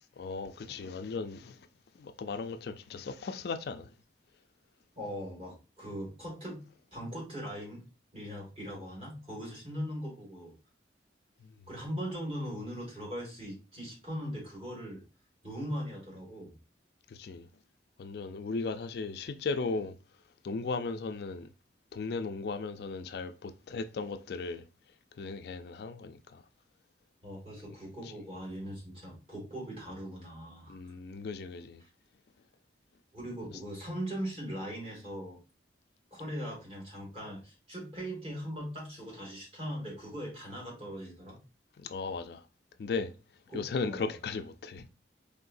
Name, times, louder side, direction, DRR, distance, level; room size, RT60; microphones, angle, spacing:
voice 1, 0.2-1.6 2.0-3.9 11.4-11.5 17.1-17.5 18.0-20.0 20.4-21.5 21.9-24.7 25.2-26.4 30.7-31.8 41.8-42.4 42.8-43.1 43.5-44.9, left 4 dB, 60° left, 0.4 m, -36 dB
voice 2, 5.0-6.6 6.9-7.8 8.1-10.5 11.7-15.0 15.4-16.6 27.2-30.9 31.8-31.9 33.1-35.4 36.1-41.4 43.5-44.1, equal, 35° right, 2.0 m, -40 dB
4.6 x 3.5 x 2.5 m
head